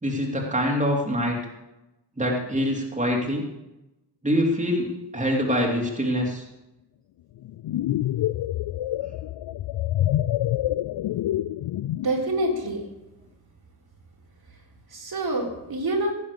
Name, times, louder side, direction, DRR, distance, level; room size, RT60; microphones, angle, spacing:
voice 1, 0.0-1.4 2.2-3.4 4.2-6.4, equal, 15° right, -1 dB, 3.2 m, -24 dB
sound 1, 7.4-12.2, left 13 dB, 75° left, 0.5 m, -27 dB
voice 2, 12.0-12.8 14.9-16.1, right 1 dB, 60° right, -1 dB, 3.9 m, -26 dB
17.0 x 9.2 x 7.0 m, 0.96 s
wide cardioid pair, 110°, 43 cm